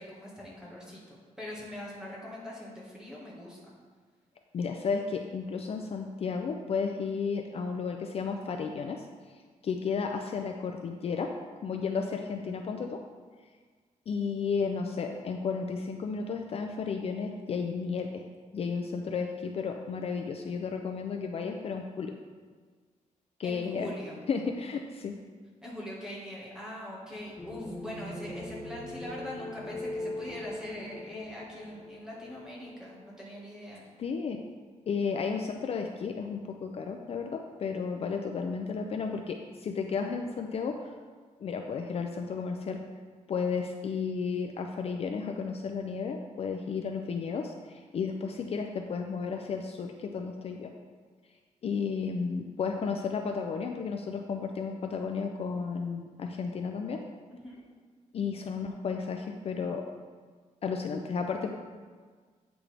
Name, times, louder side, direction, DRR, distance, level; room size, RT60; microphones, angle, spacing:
voice 1, 0.0-3.7 23.4-24.2 25.6-33.8 57.3-57.6, left 1 dB, 5° right, -5 dB, 1.7 m, -42 dB
voice 2, 4.5-9.0 9.6-11.3 11.6-13.0 14.1-18.2 18.5-22.2 23.4-23.9 24.3-25.1 34.0-34.4 34.9-40.9 41.4-42.8 43.3-50.7 51.6-57.0 58.1-59.8 60.6-61.5, left 5 dB, 50° left, 4 dB, 0.5 m, -33 dB
sound 1, 27.4-33.2, left 2 dB, 20° left, 1.0 m, -41 dB
8.8 x 6.0 x 3.4 m, 1.5 s
wide cardioid pair, 165°, 13 cm